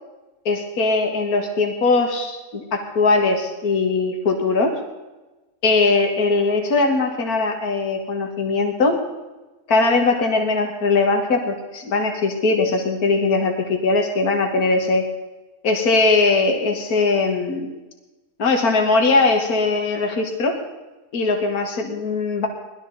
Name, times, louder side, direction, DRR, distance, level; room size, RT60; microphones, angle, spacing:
voice 1, 0.5-4.8 5.6-9.0 9.7-15.0 15.6-17.7 18.4-20.6 21.1-22.5, left 3 dB, 65° left, 3 dB, 2.1 m, -20 dB
19.5 x 13.0 x 4.1 m, 1.1 s
omnidirectional pair, 1.7 m